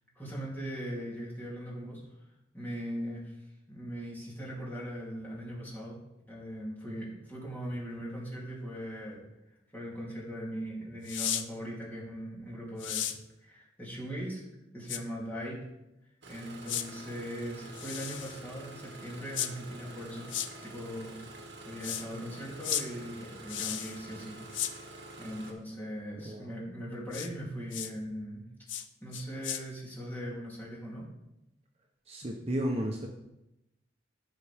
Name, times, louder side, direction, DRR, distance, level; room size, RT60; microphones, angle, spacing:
voice 1, 0.1-2.0 2.5-3.4 3.7-6.0 6.3-9.2 9.7-13.1 13.4-14.4 14.7-15.6 16.3-20.3 20.6-21.2 21.6-24.3 24.6-24.8 25.2-28.5 29.0-31.1, equal, 10° left, -6 dB, 3.2 m, -40 dB
sound 1, 11.1-11.4 12.8-13.2 14.9-15.0 16.7-16.9 17.7-18.4 19.3-19.5 20.3-20.5 21.8-22.0 22.6-22.8 23.5-24.0 24.5-24.7 27.1-27.3 27.7-27.9 28.7-28.9 29.1-29.6, left 10 dB, 80° left, 0.6 m, -34 dB
Engine starting, 16.2-25.5, right 2 dB, 65° right, 1.9 m, -47 dB
voice 2, 32.1-33.1, equal, 35° right, 0 dB, 0.9 m, -33 dB
15.5 x 5.6 x 3.6 m, 0.91 s
head